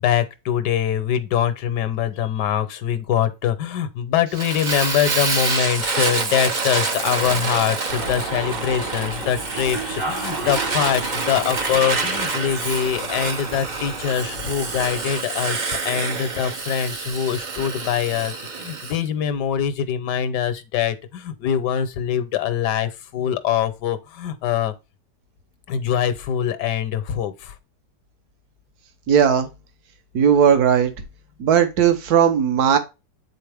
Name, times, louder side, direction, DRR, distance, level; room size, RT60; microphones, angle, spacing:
voice 1, 0.0-24.7 25.7-27.5, left 9 dB, 75° left, 1.4 m, -23 dB
Fire, 4.4-19.0, right 4 dB, 45° right, 0.6 m, -27 dB
sound 1, 7.9-15.1, right 2 dB, 85° right, 3.9 m, -32 dB
voice 2, 29.1-29.5 30.1-30.9 31.4-32.8, right 8 dB, 60° right, 1.5 m, -17 dB
8.6 x 4.1 x 3.4 m
omnidirectional pair, 1.9 m